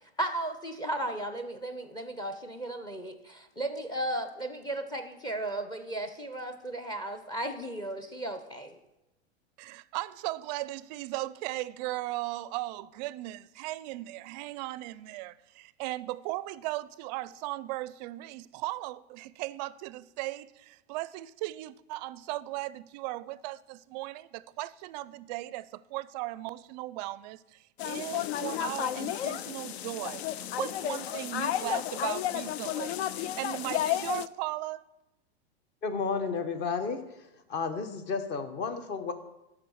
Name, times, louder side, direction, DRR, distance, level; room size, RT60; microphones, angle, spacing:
voice 1, 0.2-8.8, right 1 dB, 10° left, 0.7 m, -35 dB
voice 2, 9.6-34.8, right 17 dB, 40° right, 0.4 m, -37 dB
sound 1, 27.8-34.3, left 12 dB, 70° left, 0.5 m, -32 dB
voice 3, 35.8-37.0 37.5-39.1, left 5 dB, 30° left, 1.1 m, -32 dB
12.0 x 4.9 x 6.3 m
hypercardioid pair, 125°, 33 cm